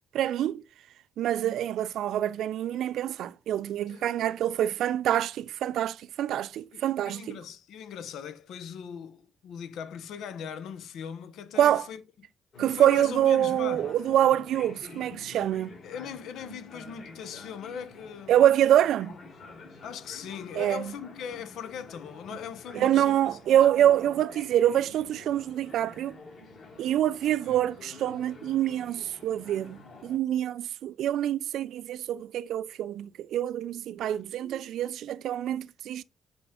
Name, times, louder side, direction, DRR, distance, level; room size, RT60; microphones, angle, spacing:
voice 1, 0.1-0.6 1.2-7.4 11.6-11.9 12.6-15.7 18.3-19.2 20.5-20.9 22.7-26.2 26.8-36.0, right 11 dB, 65° right, 0.3 m, -26 dB
voice 2, 3.9-4.3 6.7-12.0 12.7-13.9 15.8-18.4 19.8-23.9 27.4-27.6, left 7 dB, 70° left, 0.9 m, -40 dB
sound 1, 12.5-30.2, left 3 dB, 50° left, 3.4 m, -48 dB
7.0 x 4.4 x 3.6 m
cardioid pair, 175°, 0 cm